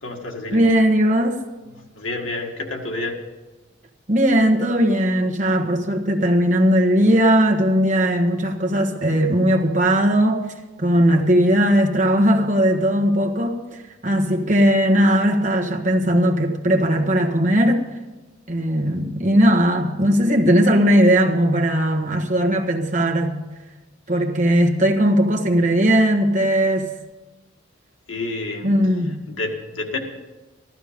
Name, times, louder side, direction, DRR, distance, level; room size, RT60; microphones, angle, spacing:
voice 1, 0.0-0.6 1.7-3.2 28.1-28.7 29.3-30.0, left 2 dB, 85° left, 2 dB, 1.8 m, -29 dB
voice 2, 0.5-1.4 4.1-10.4 10.8-17.8 18.5-23.4 24.1-26.9 28.6-29.2, equal, 40° right, 2 dB, 1.3 m, -18 dB
14.0 x 13.0 x 5.1 m, 1.2 s
head